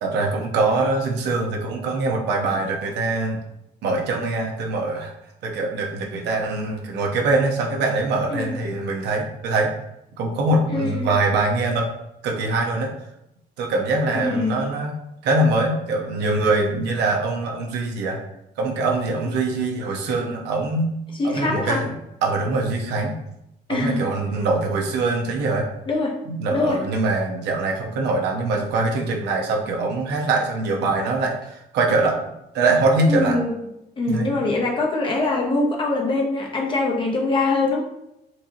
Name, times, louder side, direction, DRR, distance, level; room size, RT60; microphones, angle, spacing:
voice 1, 0.0-3.4 3.8-5.1 5.4-9.7 10.2-11.9 12.2-12.9 13.6-14.9 15.2-18.2 18.6-20.9 21.2-21.9 22.2-23.2 23.7-25.7 26.2-32.2 32.5-33.4 34.1-34.6, right 2 dB, 85° right, 1 dB, 0.9 m, -23 dB
voice 2, 10.7-11.1 14.1-14.6 21.1-21.8 23.7-24.1 25.9-26.1 26.5-26.8 33.1-33.5 34.0-37.8, left 2 dB, 30° left, 0 dB, 0.8 m, -23 dB
4.5 x 2.8 x 2.7 m, 0.85 s
cardioid pair, 155°, 17 cm